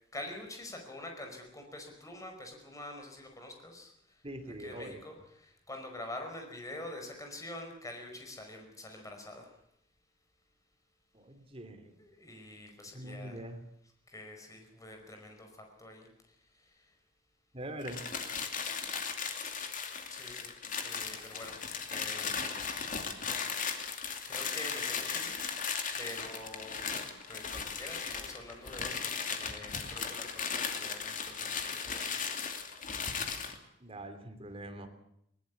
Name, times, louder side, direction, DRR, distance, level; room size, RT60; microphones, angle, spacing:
voice 1, 0.1-9.6 12.0-13.4 14.1-17.0 20.1-22.6 23.7-23.8 24.3-25.6 26.0-27.0 27.3-32.6, left 1 dB, 20° left, 3 dB, 5.1 m, -46 dB
voice 2, 4.2-5.0 11.1-11.9 12.9-13.6 17.5-18.0 33.8-34.9, right 1 dB, 30° right, 7 dB, 3.0 m, -43 dB
sound 1, 17.8-33.6, left 6 dB, 45° left, 2.7 m, -37 dB
21.0 x 19.5 x 8.4 m, 0.76 s
head